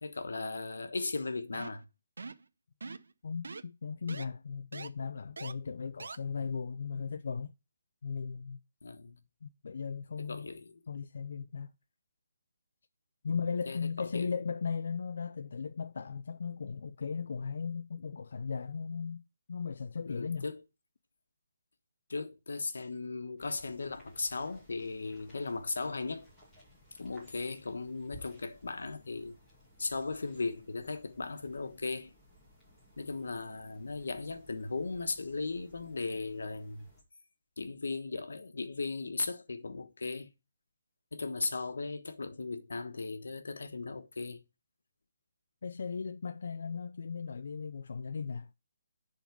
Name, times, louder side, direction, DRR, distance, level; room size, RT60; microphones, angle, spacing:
voice 1, 0.0-1.9 8.8-9.2 10.2-10.7 13.3-13.4 13.7-14.4 20.0-20.6 22.1-26.3 26.9-29.4 29.8-32.1 33.0-36.9 37.6-40.3 41.1-44.4, left 3 dB, 85° left, 1.2 m, -37 dB
sound 1, 1.5-1.8 2.2-2.5 2.8-3.1 3.4-3.6 4.1-4.3 4.7-4.9 5.4-5.5 6.0-6.2, right 4 dB, 80° right, 0.7 m, -42 dB
voice 2, 3.2-7.5 8.0-8.6 9.4-10.5 10.9-11.7 13.2-19.2 19.5-20.5 45.6-48.5, left 5 dB, 55° left, 0.4 m, -37 dB
sound 2, 23.4-37.0, equal, ahead, 2.3 m, -60 dB
10.5 x 3.9 x 4.6 m
hypercardioid pair, 175°, 0 cm